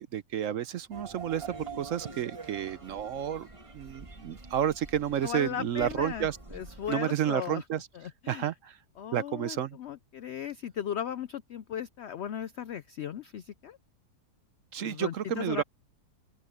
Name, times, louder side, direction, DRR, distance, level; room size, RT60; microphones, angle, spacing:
voice 1, 0.0-3.5 3.7-6.4 6.9-7.9 8.3-8.8 9.1-9.8 14.7-15.6, right 10 dB, 65° right, 0.9 m, -31 dB
sound 1, 0.9-7.0, right 4 dB, 20° right, 1.6 m, -46 dB
voice 2, 5.2-7.6 7.9-8.5 9.0-13.8 14.8-15.6, left 9 dB, 75° left, 0.6 m, -37 dB
open air
omnidirectional pair, 1.7 m